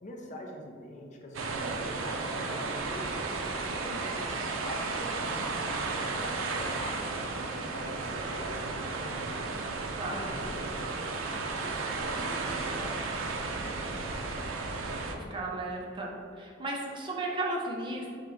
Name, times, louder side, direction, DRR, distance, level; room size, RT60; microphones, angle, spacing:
voice 1, 0.0-3.3 3.7-7.2 7.7-9.6 10.1-13.0 13.4-14.4, left 1 dB, 35° left, 0 dB, 0.5 m, -44 dB
sound 1, 1.3-15.1, right 3 dB, 90° right, 0.4 m, -34 dB
voice 2, 10.0-10.3 14.7-18.1, right 2 dB, 25° right, -2 dB, 0.5 m, -35 dB
4.4 x 2.9 x 3.7 m, 2.2 s
head